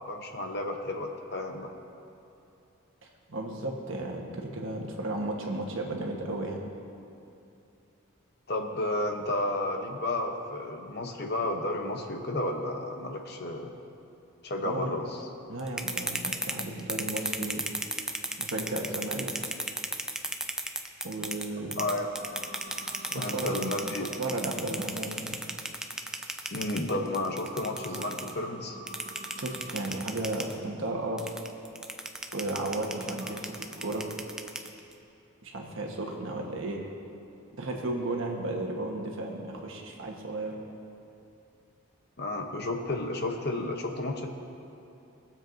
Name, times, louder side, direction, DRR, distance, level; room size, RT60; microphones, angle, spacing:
voice 1, 0.0-1.7 8.5-13.7 14.4-15.2 21.8-22.0 23.2-24.1 26.5-28.8 42.2-44.3, left 2 dB, 50° left, 3 dB, 0.8 m, -32 dB
voice 2, 3.0-6.6 14.6-15.0 15.5-17.6 18.4-19.3 21.0-21.8 23.1-23.8 24.2-25.4 29.4-31.4 32.3-34.1 35.4-36.8 37.6-40.5, right 2 dB, 75° right, 0 dB, 1.3 m, -34 dB
sound 1, 15.6-21.4 21.7-28.3 28.9-30.5 31.2-34.9, right 1 dB, 5° right, 0.3 m, -33 dB
sound 2, 22.0-24.1 27.4-29.7 33.2-33.4, right 1 dB, 45° right, 1.0 m, -46 dB
20.0 x 7.4 x 2.7 m, 2.7 s
head